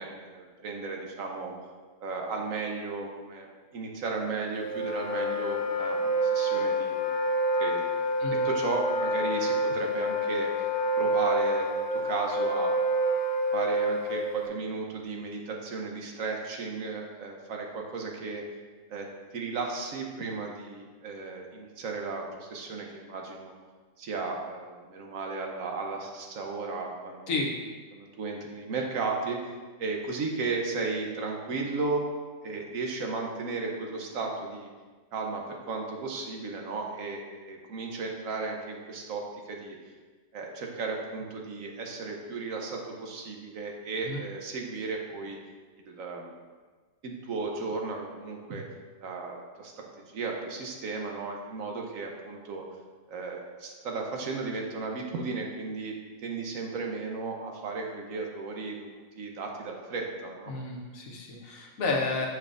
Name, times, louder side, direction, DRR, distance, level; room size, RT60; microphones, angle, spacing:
voice 1, 0.0-1.5 2.0-3.5 3.7-7.1 7.6-7.9 8.4-10.5 11.0-12.7 13.5-18.4 18.9-19.1 19.3-23.6 24.0-27.3 27.9-29.4 29.8-32.0 32.4-34.7 35.1-39.8 40.3-45.4 45.8-46.3 47.0-48.6 49.0-52.6 53.1-60.5, right 4 dB, 85° right, 1 dB, 1.3 m, -35 dB
Wind instrument woodwind instrument, 4.5-14.5, equal, 55° left, 0.6 m, -28 dB
voice 2, 60.5-62.3, left 3 dB, 80° left, -1 dB, 1.4 m, -31 dB
6.9 x 6.0 x 2.5 m, 1.4 s
omnidirectional pair, 1.4 m